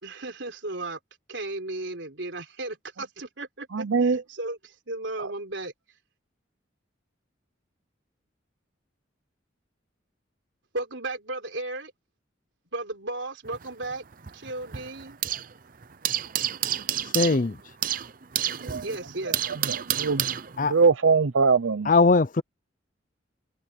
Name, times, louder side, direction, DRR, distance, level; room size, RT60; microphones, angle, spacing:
voice 1, 0.0-1.0 1.3-5.7 10.7-11.9 12.7-14.0 14.3-15.2 18.8-19.4, right 2 dB, 70° right, 3.9 m, -35 dB
voice 2, 3.7-4.2 5.2-5.3 18.6-18.8 19.9-20.3 20.6-21.9, right 4 dB, 90° right, 0.7 m, -22 dB
sound 1, 13.5-15.6 15.8-20.9, right 11 dB, 45° right, 0.7 m, -30 dB
voice 3, 17.1-17.5 20.6-20.7 21.9-22.4, left 3 dB, 45° left, 0.6 m, -20 dB
head